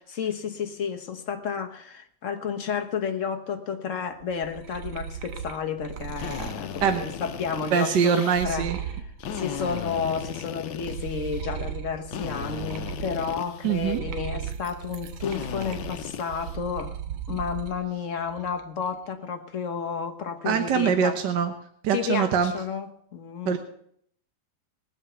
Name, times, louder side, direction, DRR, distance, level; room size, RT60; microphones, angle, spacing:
voice 1, 0.1-9.0 9.3-17.0 17.3-21.2 21.9-23.6, left 6 dB, 45° left, 5 dB, 1.5 m, -31 dB
sound 1, 4.2-10.4 10.8-17.8 18.2-18.8, right 8 dB, 85° right, 1.8 m, -37 dB
Drill, 6.2-8.5 9.2-11.4 12.1-14.0 15.2-16.6, left 9 dB, 85° left, 1.6 m, -37 dB
voice 2, 7.7-8.8 13.6-14.0 17.3-17.4 20.4-21.5 21.8-22.5 23.4-23.6, right 7 dB, 65° right, 7 dB, 1.6 m, -23 dB
21.0 x 8.1 x 5.7 m, 0.66 s
omnidirectional pair, 2.1 m